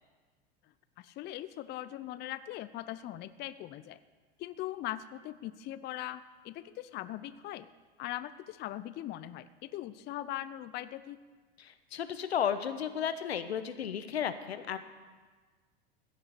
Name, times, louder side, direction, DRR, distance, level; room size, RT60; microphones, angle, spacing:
voice 1, 1.0-4.0 4.4-7.7 8.0-11.2, left 13 dB, 35° left, 14 dB, 0.5 m, -40 dB
voice 2, 11.6-14.8, left 8 dB, 80° left, 11 dB, 1.0 m, -33 dB
15.5 x 6.7 x 8.2 m, 1.4 s
hypercardioid pair, 85°, 31 cm